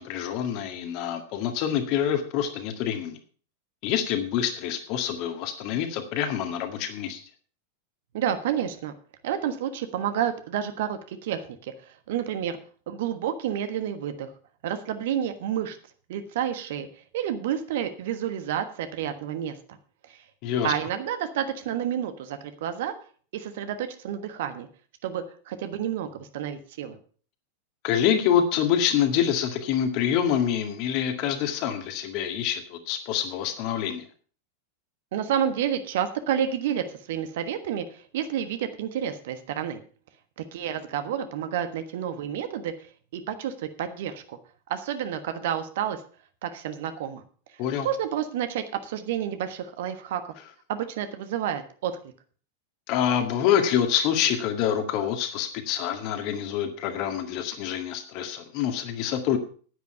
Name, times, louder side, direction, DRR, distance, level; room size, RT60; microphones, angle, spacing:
voice 1, 0.0-3.2 3.8-7.2 20.4-20.7 27.8-34.0 47.6-47.9 52.9-59.4, left 9 dB, 45° left, 6 dB, 1.9 m, -26 dB
voice 2, 8.1-8.9 9.2-11.7 12.1-12.6 12.9-14.3 14.6-15.8 16.1-16.9 17.1-19.5 20.6-22.9 23.3-24.7 25.0-27.0 35.1-39.8 40.5-42.7 43.1-44.4 44.7-46.0 46.4-47.2 47.8-50.2 50.7-51.9, right 9 dB, 55° right, 9 dB, 1.3 m, -30 dB
10.0 x 9.6 x 5.6 m, 0.43 s
figure-of-eight pair, 90°, 0 cm